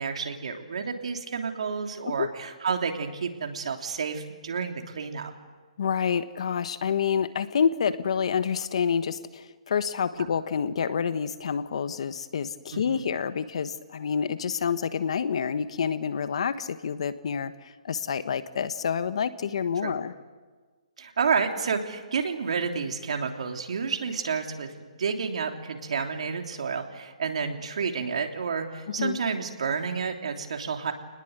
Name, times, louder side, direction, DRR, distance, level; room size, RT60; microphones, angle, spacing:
voice 1, 0.0-5.3 10.2-10.3 12.7-13.0 19.8-19.9 21.0-30.9, right 5 dB, 65° right, 4 dB, 3.2 m, -30 dB
voice 2, 5.8-20.1 29.0-29.2, left 7 dB, 60° left, 12 dB, 1.4 m, -28 dB
28.5 x 20.0 x 8.2 m, 1.4 s
hypercardioid pair, 160°, 4 cm